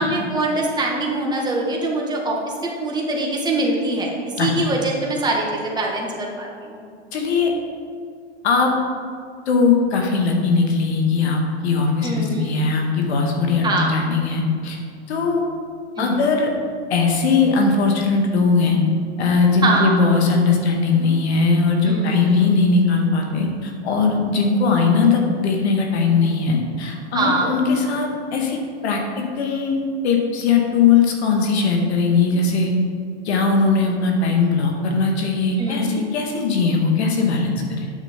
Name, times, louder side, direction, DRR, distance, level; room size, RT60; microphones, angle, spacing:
voice 1, 0.0-6.8 12.0-12.6 13.6-14.0 16.0-16.2 19.6-20.0 21.8-22.5 27.1-27.5 35.6-36.1, right 2 dB, 10° right, -2 dB, 1.7 m, -23 dB
voice 2, 7.1-7.5 8.4-8.7 9.5-14.8 15.1-15.4 16.0-16.5 16.9-18.8 19.2-32.7 33.2-37.9, left 4 dB, 65° left, 2 dB, 1.9 m, -19 dB
9.1 x 6.6 x 5.1 m, 2.2 s
hypercardioid pair, 130°, 34 cm